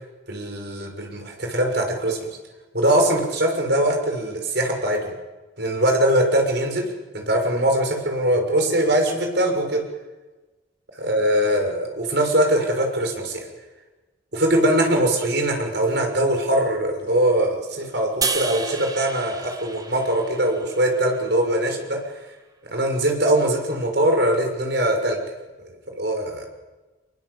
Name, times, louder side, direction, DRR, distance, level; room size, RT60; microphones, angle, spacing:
voice 1, 0.3-2.2 2.7-5.1 5.6-6.8 7.1-9.8 10.9-13.4 14.3-22.0 22.7-25.2 25.6-26.5, right 1 dB, 55° right, 3 dB, 6.3 m, -22 dB
sound 1, 18.2-21.5, right 4 dB, 20° right, 1.6 m, -31 dB
25.5 x 23.5 x 8.3 m, 1.2 s
head